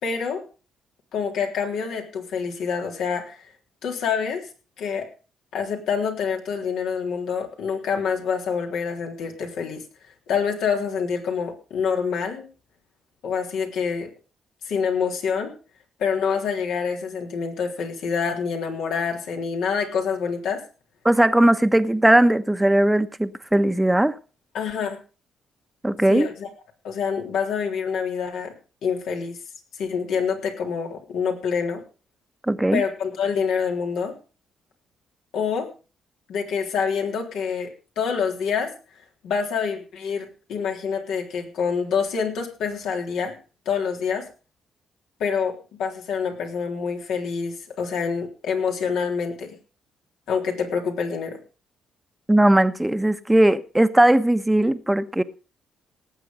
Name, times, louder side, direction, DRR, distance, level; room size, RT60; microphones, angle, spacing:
voice 1, 0.0-0.4 1.1-3.4 3.8-4.4 4.8-5.1 5.5-9.8 10.3-12.4 13.2-14.1 14.7-15.5 16.0-20.6 24.5-25.0 26.1-26.5 26.8-28.5 28.8-29.4 29.7-31.8 32.7-34.1 35.3-35.7 36.3-38.7 39.2-43.4 43.7-44.3 45.2-45.5 45.8-49.6 50.3-51.4, left 6 dB, 75° left, 3.6 m, -26 dB
voice 2, 21.0-24.1 25.8-26.3 32.4-32.8 52.3-55.2, right 1 dB, 10° right, 1.2 m, -18 dB
18.0 x 7.7 x 5.3 m
supercardioid pair, 60°, 0 cm